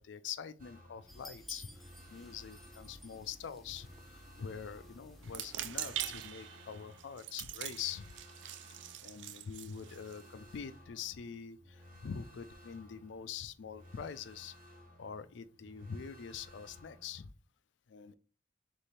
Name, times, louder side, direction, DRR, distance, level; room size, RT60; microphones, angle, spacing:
voice 1, 0.0-1.7 2.1-8.1 9.0-14.5 15.0-17.3 17.9-18.2, left 7 dB, 75° left, 0.4 m, -44 dB
sound 1, 0.6-17.2, left 1 dB, 50° right, 1.2 m, -58 dB
sound 2, 1.1-6.3, left 1 dB, ahead, 0.7 m, -54 dB
sound 3, 5.2-10.6, right 12 dB, 75° right, 0.4 m, -43 dB
3.4 x 3.4 x 4.1 m
head